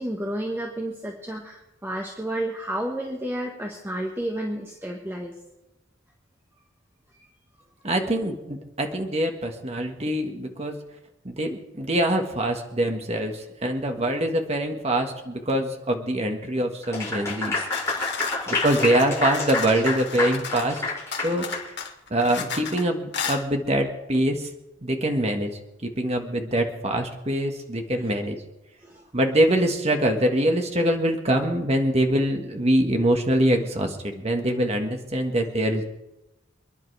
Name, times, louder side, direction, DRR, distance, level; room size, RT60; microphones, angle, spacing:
voice 1, 0.0-5.3 7.1-7.2 28.8-29.0, right 1 dB, 10° right, 0 dB, 1.4 m, -31 dB
voice 2, 7.8-10.8 11.3-17.6 18.5-20.8 21.2-21.5 22.1-24.5 24.8-25.5 25.8-28.4 29.1-35.9, right 1 dB, 35° right, 4 dB, 1.6 m, -24 dB
Clapping / Applause, 16.8-21.7, left 3 dB, 15° left, 6.0 m, -28 dB
sound 1, 17.4-20.8 21.1-22.8 23.1-23.4, left 6 dB, 60° left, 1.9 m, -34 dB
28.0 x 10.5 x 3.4 m, 0.94 s
head